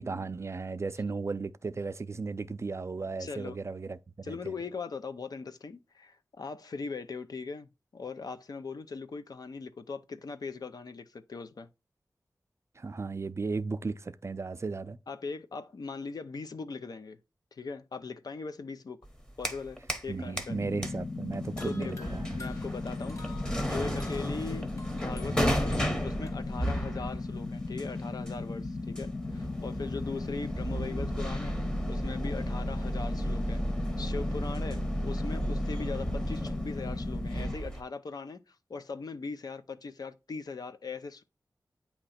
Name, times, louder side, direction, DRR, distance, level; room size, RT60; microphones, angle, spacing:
voice 1, 0.0-4.4 12.8-15.0 20.1-22.4, right 4 dB, 45° right, 0.4 m, -35 dB
voice 2, 3.2-3.6 4.2-11.7 15.1-17.2 17.5-19.0 19.4-20.6 21.6-22.1 22.4-23.2 23.7-31.6 31.9-41.2, left 4 dB, 70° left, 0.6 m, -40 dB
sound 1, 19.0-20.1 20.4-37.8, equal, 10° left, 1.0 m, -34 dB
sound 2, 20.4-37.6, left 3 dB, 35° left, 0.3 m, -37 dB
sound 3, 21.6-26.3, left 3 dB, 50° left, 1.4 m, -51 dB
8.8 x 2.9 x 4.2 m
wide cardioid pair, 85°, 7 cm